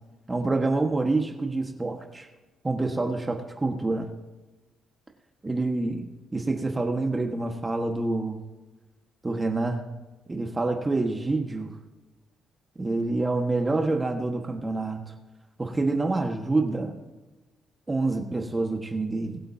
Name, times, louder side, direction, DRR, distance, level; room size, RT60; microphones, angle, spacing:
voice 1, 0.3-2.3 2.6-4.1 5.4-8.4 9.2-9.8 10.3-11.7 12.8-15.0 15.6-16.9 17.9-19.4, right 2 dB, 20° right, 3 dB, 1.6 m, -27 dB
21.5 x 7.9 x 2.8 m, 1.2 s
cardioid pair, 90°, 0 cm